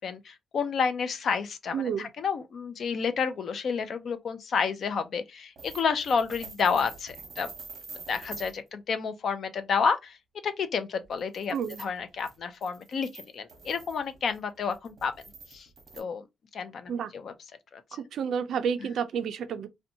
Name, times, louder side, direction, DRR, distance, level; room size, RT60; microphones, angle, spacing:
voice 1, 0.0-7.5 7.9-10.2 10.4-15.1 15.5-15.7 16.0-16.2 16.5-17.3 17.7-17.8, left 6 dB, 45° left, 0.4 m, -30 dB
voice 2, 1.7-2.1 11.5-11.8 16.9-17.1 17.9-19.7, right 7 dB, 55° right, 0.3 m, -30 dB
sound 1, 5.6-8.6 11.0-16.0, right 4 dB, 40° right, 0.9 m, -46 dB
2.6 x 2.1 x 2.6 m
cardioid pair, 170°, 0 cm